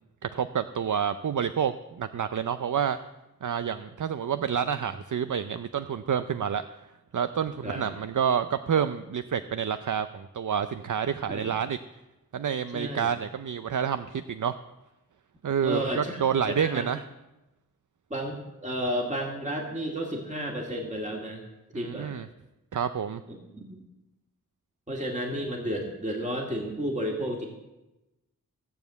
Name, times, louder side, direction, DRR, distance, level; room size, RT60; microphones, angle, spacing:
voice 1, 0.2-3.0 3.4-6.6 7.1-11.8 12.3-14.5 15.4-17.0 21.7-22.3 22.7-23.2, right 8 dB, 60° right, 11 dB, 0.6 m, -28 dB
voice 2, 12.7-13.1 15.6-16.9 18.1-21.4 21.7-22.1 23.3-23.8 24.9-27.5, equal, 20° right, 0 dB, 2.2 m, -32 dB
16.5 x 7.2 x 8.1 m, 0.99 s
wide cardioid pair, 90°, 35 cm